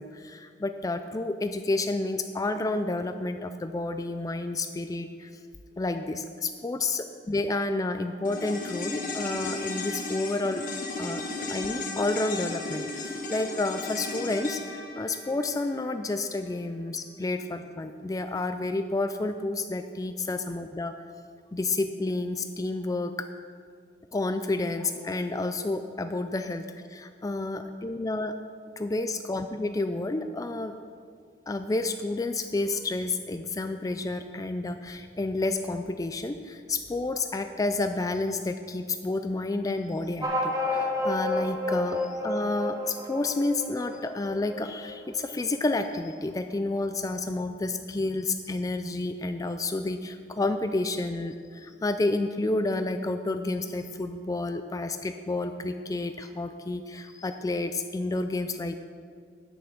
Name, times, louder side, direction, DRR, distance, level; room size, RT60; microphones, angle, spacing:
voice 1, 0.0-5.3 5.8-10.6 11.0-20.9 21.5-23.3 24.1-28.3 28.8-30.7 31.5-58.8, left 2 dB, 20° left, 8 dB, 0.3 m, -30 dB
sound 1, 8.2-16.7 17.0-17.1, left 2 dB, 50° left, 1.2 m, -35 dB
sound 2, 40.2-45.2, left 1 dB, 20° right, 1.2 m, -30 dB
9.4 x 8.3 x 5.9 m, 2.1 s
head